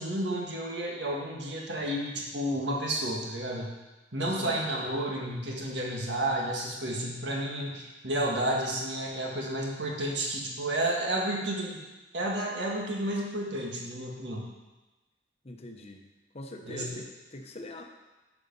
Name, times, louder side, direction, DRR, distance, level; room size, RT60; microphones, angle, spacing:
voice 1, 0.0-3.7 4.1-11.8 12.1-14.5 16.6-17.0, right 1 dB, 75° right, -1 dB, 1.7 m, -31 dB
voice 2, 15.4-16.0 16.3-17.8, left 1 dB, 35° left, 4 dB, 0.9 m, -42 dB
9.8 x 5.0 x 5.4 m, 1.1 s
head